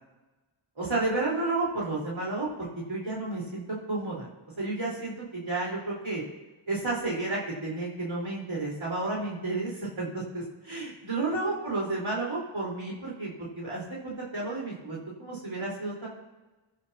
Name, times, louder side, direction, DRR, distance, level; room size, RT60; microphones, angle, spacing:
voice 1, 0.8-4.3 4.6-6.2 6.7-16.1, right 2 dB, 75° right, -5 dB, 4.5 m, -32 dB
23.5 x 12.5 x 2.9 m, 1.1 s
wide cardioid pair, 55°, 48 cm